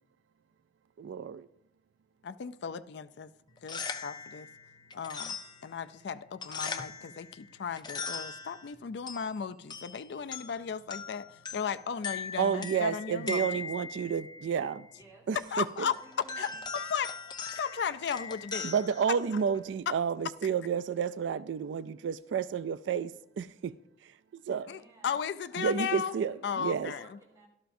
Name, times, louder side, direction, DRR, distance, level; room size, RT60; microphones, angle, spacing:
voice 1, 1.0-1.5 12.4-14.9 15.3-15.9 18.6-23.7 24.0-24.7 25.6-26.9, right 7 dB, 85° right, 0.3 m, -31 dB
voice 2, 2.2-3.3 3.6-4.5 4.9-5.4 5.6-13.5 15.3-16.0 16.4-18.7 19.9-20.0 24.7-26.2 26.4-27.1, left 7 dB, 70° left, 0.4 m, -35 dB
sound 1, 3.5-19.7, left 4 dB, 25° left, 0.6 m, -41 dB
voice 3, 14.9-15.3 15.8-16.7 24.4-25.1 25.5-27.5, equal, 20° right, 3.5 m, -57 dB
17.0 x 12.5 x 2.6 m
head